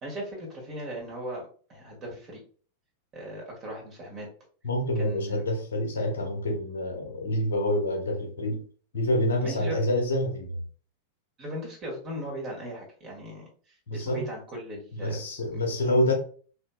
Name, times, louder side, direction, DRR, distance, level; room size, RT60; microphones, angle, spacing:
voice 1, 0.0-1.4 1.7-2.4 3.1-4.3 5.0-5.4 9.4-9.8 11.4-13.5 13.9-15.2 15.5-15.6, equal, 30° right, 1.6 m, -37 dB
voice 2, 4.6-8.7 8.9-10.6 13.9-14.3 14.9-16.1, left 1 dB, 65° left, 0.9 m, -27 dB
3.2 x 3.0 x 2.3 m
figure-of-eight pair, 90°, 0 cm